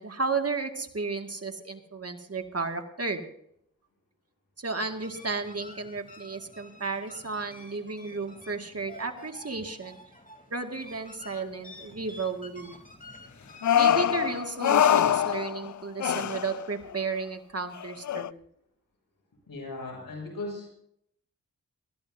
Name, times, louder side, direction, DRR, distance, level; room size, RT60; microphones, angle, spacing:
voice 1, 0.0-3.2 4.6-10.0 10.5-12.7 13.7-18.4, right 4 dB, 45° right, 5 dB, 2.0 m, -33 dB
sound 1, 4.8-14.5, left 1 dB, 25° left, 3.2 m, -50 dB
sound 2, 13.6-15.7 16.0-16.6 16.9-17.0 17.8-18.3, left 10 dB, 60° left, 0.5 m, -24 dB
voice 2, 19.5-20.7, left 2 dB, 85° left, 0 dB, 6.7 m, -37 dB
20.5 x 14.0 x 2.7 m, 0.73 s
cardioid pair, 40°, 34 cm